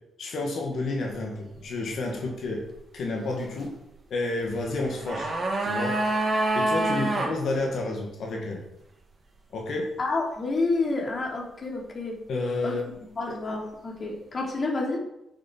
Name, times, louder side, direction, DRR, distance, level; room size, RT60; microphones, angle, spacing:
voice 1, 0.2-2.6 2.9-3.7 4.1-5.3 5.6-6.0 6.5-8.6 9.5-10.0 12.3-12.8 13.2-13.3, left 2 dB, 65° left, 0 dB, 2.1 m, -30 dB
sound 1, 4.7-7.3 7.6-7.7, right 2 dB, 40° right, 2.8 m, -26 dB
voice 2, 10.0-12.2 12.6-12.8 13.2-15.0, left 3 dB, 40° left, -1 dB, 3.4 m, -29 dB
9.3 x 7.5 x 4.8 m, 0.87 s
cardioid pair, 80°, 0 cm